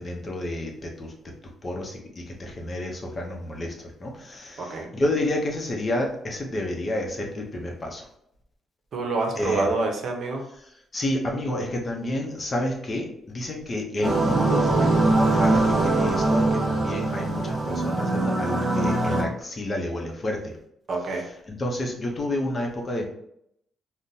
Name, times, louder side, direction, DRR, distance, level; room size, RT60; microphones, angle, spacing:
voice 1, 0.0-1.3 1.6-8.1 9.4-9.7 10.9-20.5 21.5-23.1, left 1 dB, 35° left, 1 dB, 0.7 m, -30 dB
voice 2, 4.6-4.9 8.9-10.4 20.9-21.3, right 3 dB, 60° right, 1 dB, 0.7 m, -27 dB
sound 1, 14.0-19.2, right 2 dB, 35° right, 1.1 m, -22 dB
3.7 x 2.1 x 2.7 m, 0.74 s
cardioid pair, 90°, 0 cm